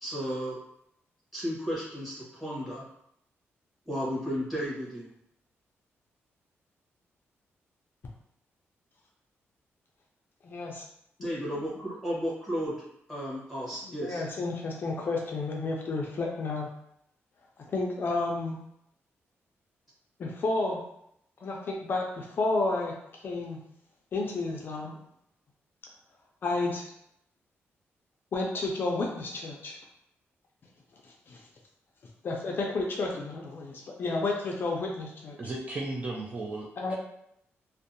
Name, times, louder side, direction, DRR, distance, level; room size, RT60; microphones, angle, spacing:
voice 1, 0.0-0.6 1.3-2.8 3.8-5.1 11.2-12.7 13.1-14.2, equal, 5° right, -7 dB, 1.0 m, -33 dB
voice 2, 10.4-10.8 13.9-16.7 17.6-18.6 20.2-20.8 21.4-22.9 23.2-23.6 24.1-25.0 26.4-26.8 28.3-29.8 31.3-31.4 32.2-35.4 36.8-36.9, left 3 dB, 45° left, 0 dB, 0.4 m, -31 dB
voice 3, 35.4-36.9, right 2 dB, 30° right, -3 dB, 0.3 m, -35 dB
2.6 x 2.1 x 2.6 m, 0.75 s
wide cardioid pair, 140°, 5 cm